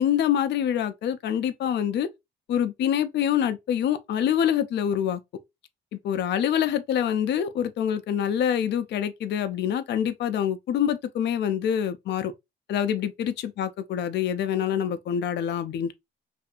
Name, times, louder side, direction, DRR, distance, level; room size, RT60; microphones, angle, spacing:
voice 1, 0.0-2.1 2.5-5.2 6.0-12.3 12.7-15.9, left 9 dB, 60° left, 0.4 m, -25 dB
2.6 x 2.4 x 2.2 m
cardioid pair, 90°, 20 cm